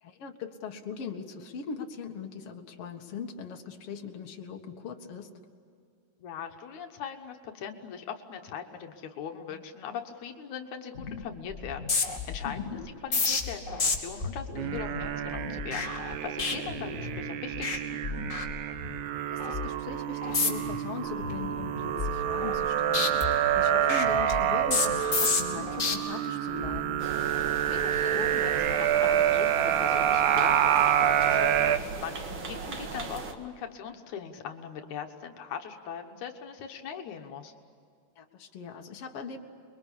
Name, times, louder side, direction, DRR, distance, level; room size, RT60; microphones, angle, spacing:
voice 1, 0.0-5.3 12.5-12.8 19.3-27.1 38.2-39.4, left 6 dB, 55° left, 2 dB, 2.6 m, -40 dB
voice 2, 6.2-12.6 13.0-18.0 27.7-37.5, left 7 dB, 80° left, 4 dB, 2.7 m, -40 dB
sound 1, 10.9-11.2 11.5-17.2 17.5-17.8 18.0-19.0 19.4-19.7 20.2-20.8 21.2-22.7 22.9-25.9 26.5-26.8, left 4 dB, 25° left, 2.9 m, -31 dB
sound 2, 14.6-31.8, right 10 dB, 80° right, 2.3 m, -27 dB
sound 3, 27.0-33.3, right 3 dB, 45° right, 2.4 m, -38 dB
29.5 x 22.5 x 8.5 m, 2.3 s
omnidirectional pair, 3.3 m